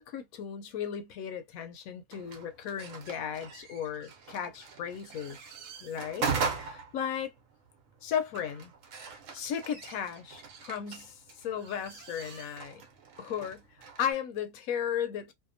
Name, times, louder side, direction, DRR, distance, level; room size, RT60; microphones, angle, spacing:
voice 1, 0.0-5.4 5.8-7.3 8.0-8.7 9.3-12.8 13.2-13.6 14.0-15.3, left 8 dB, 70° left, 1.0 m, -35 dB
sound 1, 2.1-14.1, right 5 dB, 65° right, 1.0 m, -40 dB
2.8 x 2.1 x 2.5 m
omnidirectional pair, 1.6 m